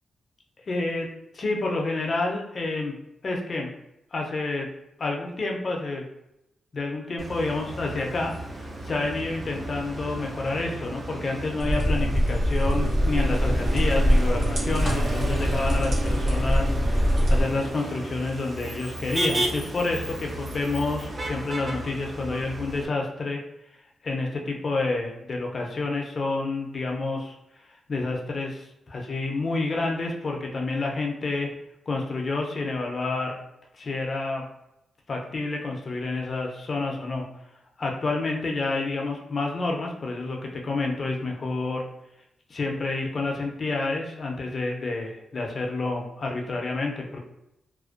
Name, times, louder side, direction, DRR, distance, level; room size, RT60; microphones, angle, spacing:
voice 1, 0.7-1.1 1.3-2.9 3.2-3.7 4.1-4.7 5.0-6.0 6.7-23.4 24.0-27.3 27.9-31.5 31.9-33.4 33.8-34.4 35.1-37.3 37.8-41.8 42.5-47.2, left 3 dB, 40° left, 1 dB, 0.4 m, -29 dB
Motor vehicle (road), 7.2-22.9, right 1 dB, 25° right, 0.4 m, -34 dB
sound 1, 11.6-17.4, equal, 65° right, 0.7 m, -23 dB
2.4 x 2.1 x 2.4 m, 0.85 s
cardioid pair, 115°, 0 cm